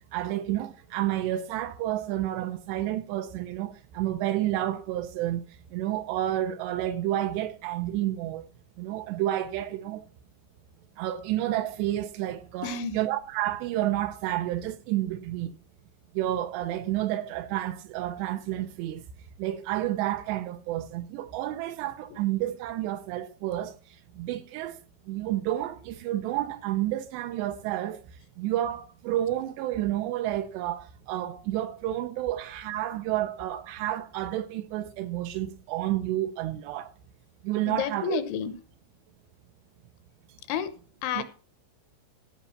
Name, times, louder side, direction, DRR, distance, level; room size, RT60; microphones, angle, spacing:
voice 1, 0.1-5.4 5.7-8.5 8.8-10.0 11.0-15.5 16.2-19.0 19.4-23.7 24.2-24.8 25.1-28.0 28.4-36.9 37.4-38.2 41.2-41.3, right 13 dB, 80° right, 2.6 m, -30 dB
voice 2, 12.6-13.0 22.1-22.2 37.7-38.5 40.5-40.7 41.0-41.2, left 8 dB, 80° left, 3.4 m, -30 dB
15.5 x 5.4 x 5.7 m
omnidirectional pair, 5.3 m